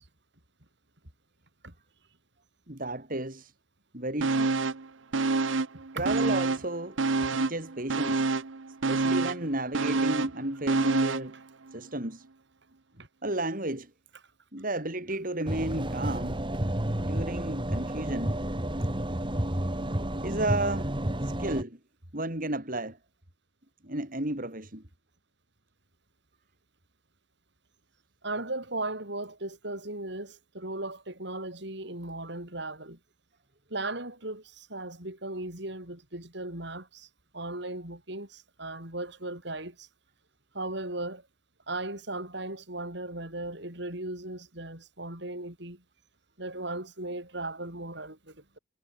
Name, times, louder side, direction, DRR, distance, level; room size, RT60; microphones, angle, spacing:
voice 1, 2.7-3.5 3.9-4.5 5.9-7.0 7.3-8.3 8.9-11.4 11.7-12.2 13.2-13.9 14.5-16.5 17.0-18.4 20.2-21.0 21.2-21.8 22.1-23.0 23.8-24.8, right 1 dB, 45° right, 4.8 m, -32 dB
sound 1, 4.2-4.9 5.1-6.7 7.0-11.3 11.7-11.8, right 3 dB, 75° right, 0.9 m, -27 dB
sound 2, 15.5-21.6, right 1 dB, 25° right, 2.0 m, -31 dB
voice 2, 28.2-33.0 33.7-37.1 37.3-39.9 40.5-41.2 41.7-45.8 46.4-48.6, right 2 dB, 60° right, 6.9 m, -37 dB
head